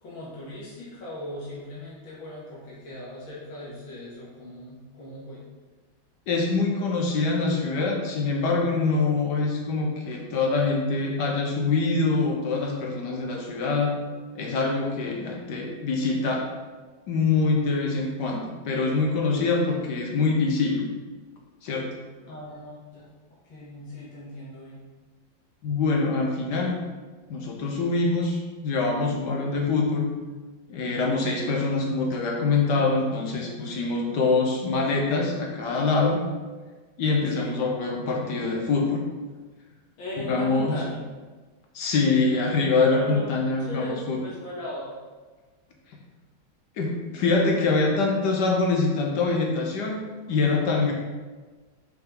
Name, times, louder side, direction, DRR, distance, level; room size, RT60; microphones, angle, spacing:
voice 1, 0.0-5.5 22.3-23.0 23.4-24.8 37.2-37.6 40.0-41.0 42.8-44.9, left 1 dB, 85° left, -8 dB, 2.4 m, -38 dB
voice 2, 6.3-13.9 14.3-16.5 17.1-20.9 21.6-21.9 25.6-26.8 27.3-30.0 30.7-36.2 37.0-39.0 40.2-40.8 41.7-44.2 46.8-50.0 50.3-50.9, left 3 dB, 65° left, 0 dB, 1.3 m, -24 dB
5.8 x 5.2 x 3.8 m, 1.3 s
omnidirectional pair, 2.1 m